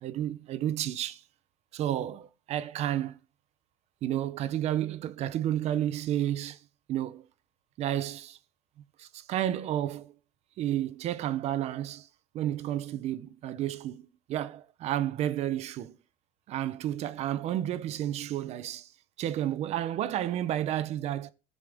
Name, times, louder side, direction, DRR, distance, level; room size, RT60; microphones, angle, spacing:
voice 1, 0.0-1.2 1.7-3.2 4.0-6.6 6.9-7.3 7.8-8.4 9.0-10.1 10.6-12.1 12.3-16.0 16.5-18.9 19.2-21.3, right 12 dB, 40° right, 0.8 m, -31 dB
20.5 x 7.2 x 3.5 m
cardioid pair, 160°, 17 cm